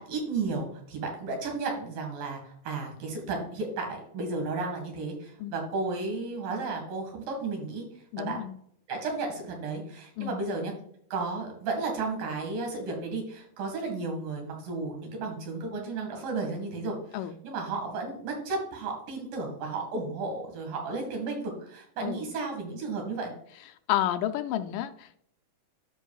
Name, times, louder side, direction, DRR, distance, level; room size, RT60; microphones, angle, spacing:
voice 1, 0.0-7.9 8.2-8.4 8.9-10.7 11.1-17.0 17.4-23.3, right 3 dB, 85° right, 2 dB, 3.6 m, -33 dB
voice 2, 8.1-8.6 10.2-10.4 17.1-17.4 22.0-22.3 23.9-25.2, left 12 dB, 80° left, 9 dB, 2.1 m, -30 dB
12.5 x 5.5 x 2.4 m, 0.67 s
omnidirectional pair, 3.8 m